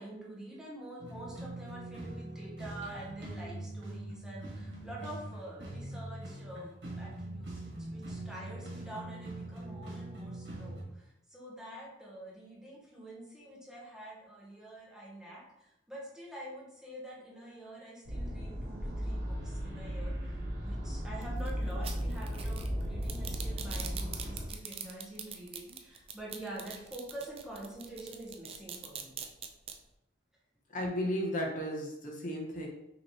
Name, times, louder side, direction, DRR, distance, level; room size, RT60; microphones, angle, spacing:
voice 1, 0.0-29.2, right 1 dB, 5° right, -4 dB, 0.9 m, -46 dB
sound 1, 1.0-10.8, right 1 dB, 90° right, 1.4 m, -43 dB
sound 2, 18.1-24.5, equal, 60° right, 1.0 m, -36 dB
sound 3, 21.2-29.7, right 7 dB, 35° right, 0.4 m, -43 dB
voice 2, 30.7-32.7, equal, 50° left, 0 dB, 0.8 m, -34 dB
5.1 x 2.9 x 3.0 m, 0.86 s
head